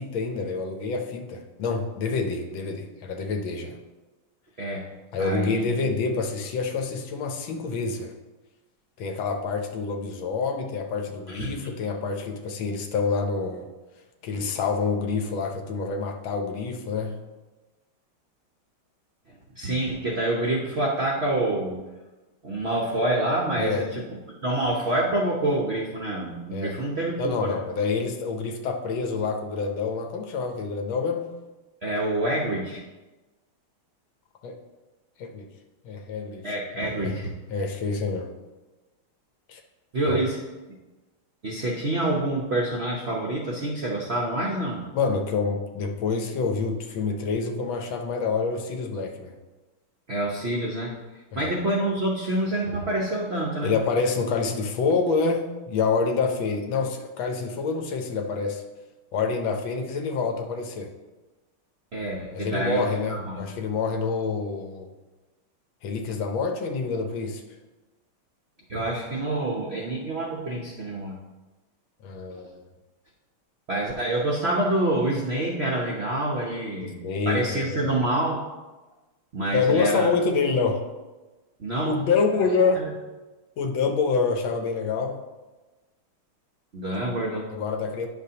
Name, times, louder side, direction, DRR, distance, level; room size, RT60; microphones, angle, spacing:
voice 1, 0.0-3.8 5.1-8.1 9.0-13.7 14.2-17.2 23.6-23.9 26.5-26.7 27.2-31.3 34.4-34.6 35.2-35.5 35.8-36.6 37.0-37.2 37.5-38.3 39.5-39.6 40.1-40.2 44.9-49.3 51.3-51.5 53.6-58.6 59.1-60.9 62.3-64.9 65.8-67.4 72.0-72.6 76.8-77.9 79.5-80.8 81.8-82.9 83.6-85.2 87.5-88.1, left 4 dB, 70° left, 4 dB, 1.4 m, -27 dB
voice 2, 5.2-5.9 11.3-11.5 19.3-21.9 22.4-24.1 24.4-27.6 31.8-32.8 36.4-37.4 39.9-40.4 41.4-44.8 50.1-50.9 51.3-53.7 61.9-63.4 68.7-71.2 73.7-76.9 77.3-78.5 79.3-80.1 81.6-82.0 82.7-82.9 86.7-87.5, right 1 dB, 80° right, -2 dB, 0.5 m, -27 dB
9.9 x 6.6 x 2.8 m, 1.2 s
omnidirectional pair, 2.4 m